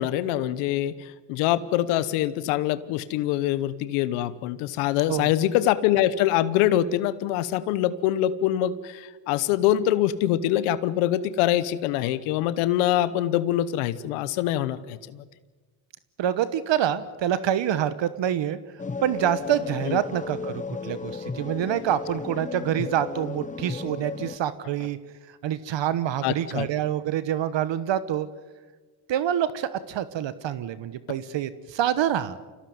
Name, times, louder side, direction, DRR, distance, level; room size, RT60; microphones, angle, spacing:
voice 1, 0.0-15.2 19.9-20.0 26.2-26.7, left 12 dB, 90° left, 15 dB, 1.0 m, -24 dB
voice 2, 16.2-18.6 19.0-25.0 25.4-28.3 29.1-32.4, right 10 dB, 60° right, 15 dB, 1.2 m, -26 dB
sound 1, 18.8-24.4, left 4 dB, 15° left, 0.7 m, -34 dB
25.0 x 17.0 x 9.4 m, 1.4 s
supercardioid pair, 65°, 50 cm